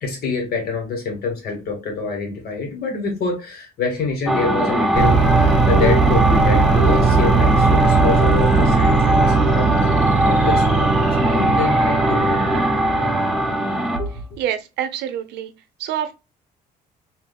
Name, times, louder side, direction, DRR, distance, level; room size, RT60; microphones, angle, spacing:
voice 1, 0.0-9.8 10.3-12.6 13.9-14.1, left 4 dB, 65° left, 1.5 m, -26 dB
sound 1, 4.3-14.1, right 1 dB, ahead, 0.6 m, -20 dB
sound 2, 4.9-13.6, right 4 dB, 45° right, 0.7 m, -19 dB
voice 2, 14.4-15.5 15.8-16.1, right 10 dB, 80° right, 0.6 m, -26 dB
3.5 x 2.7 x 2.3 m
cardioid pair, 85°, 17 cm